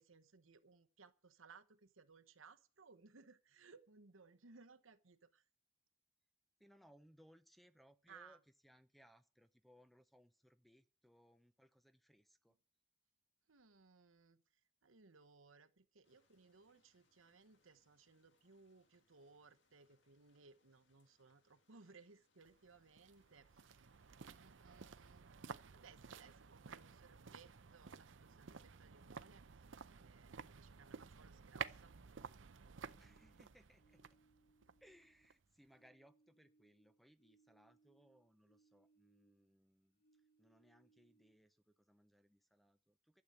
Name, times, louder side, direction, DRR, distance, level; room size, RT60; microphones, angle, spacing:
voice 1, 0.0-5.4 8.1-8.4 13.5-14.4 14.8-23.8 24.2-29.6 30.0-31.9, right 4 dB, 90° right, 1.1 m, -64 dB
voice 2, 6.6-12.6 33.0-34.2 34.8-43.2, equal, ahead, 0.6 m, -68 dB
sound 1, 16.0-25.1, left 3 dB, 65° left, 2.1 m, -81 dB
sound 2, 22.4-35.6 35.9-36.0, right 6 dB, 70° right, 0.6 m, -53 dB
sound 3, 32.8-35.4 35.6-39.6 39.9-41.6, right 3 dB, 45° left, 1.8 m, -76 dB
12.0 x 8.0 x 8.3 m
head